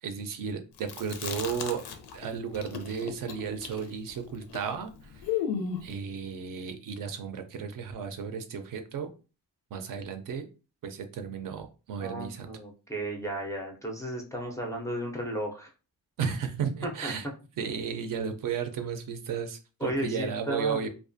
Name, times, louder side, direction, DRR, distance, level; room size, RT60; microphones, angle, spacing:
voice 1, 0.0-1.8 2.1-5.4 5.8-9.1 9.7-10.5 10.8-12.5 16.2-17.3 17.6-20.9, right 6 dB, 55° right, 7 dB, 0.5 m, -34 dB
Chewing mastication, 0.8-2.3 2.5-5.9, left 8 dB, 85° left, 0.6 m, -35 dB
voice 2, 12.0-15.7 16.8-17.1 19.8-20.8, right 1 dB, 10° left, -1 dB, 0.4 m, -34 dB
2.4 x 2.3 x 2.5 m, 0.33 s
cardioid pair, 135°, 39 cm